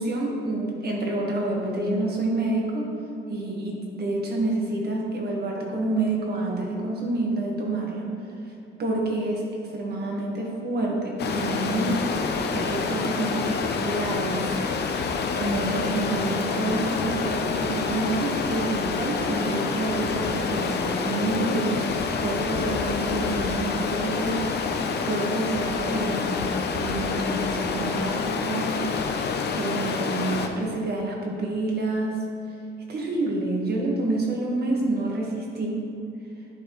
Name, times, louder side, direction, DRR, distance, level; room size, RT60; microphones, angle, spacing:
voice 1, 0.0-2.9 3.3-8.1 8.8-9.5 9.7-12.2 12.5-14.6 15.3-20.8 21.0-26.4 26.7-28.8 29.5-32.2 32.9-35.8, right 2 dB, 55° right, -2 dB, 1.5 m, -28 dB
Stream, 11.2-30.5, left 5 dB, 55° left, 0.6 m, -27 dB
10.5 x 4.2 x 3.1 m, 2.6 s
cardioid pair, 90°, 20 cm